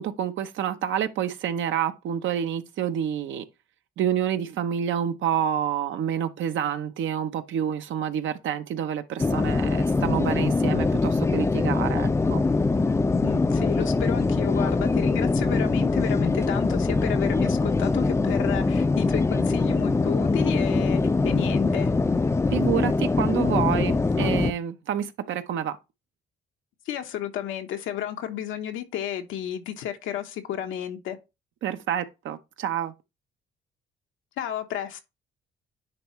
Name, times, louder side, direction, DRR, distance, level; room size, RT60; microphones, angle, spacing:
voice 1, 0.0-3.4 4.0-12.4 22.5-25.8 31.6-32.9, right 9 dB, 75° right, 0.8 m, -28 dB
sound 1, 9.2-24.5, left 3 dB, 15° left, 0.4 m, -23 dB
voice 2, 13.2-21.9 26.9-31.2 34.4-35.0, left 10 dB, 85° left, 1.0 m, -32 dB
9.9 x 3.5 x 3.1 m
cardioid pair, 90°, 20 cm